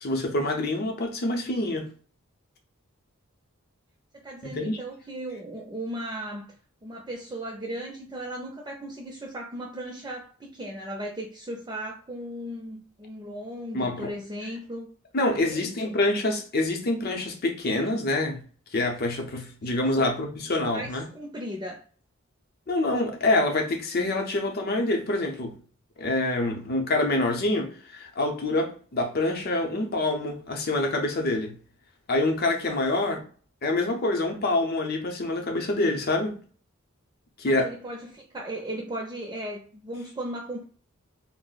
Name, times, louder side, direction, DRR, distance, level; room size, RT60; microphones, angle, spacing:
voice 1, 0.0-1.9 4.4-4.8 13.7-14.1 15.1-18.4 18.7-21.0 22.7-25.5 26.0-31.6 32.1-33.2 33.6-36.4 37.4-37.7, left 2 dB, 50° left, 0.6 m, -26 dB
voice 2, 4.1-6.5 6.8-14.9 15.4-15.8 20.0-20.1 20.7-21.8 37.5-40.6, right 1 dB, 20° right, 0.5 m, -36 dB
2.4 x 2.0 x 3.8 m
head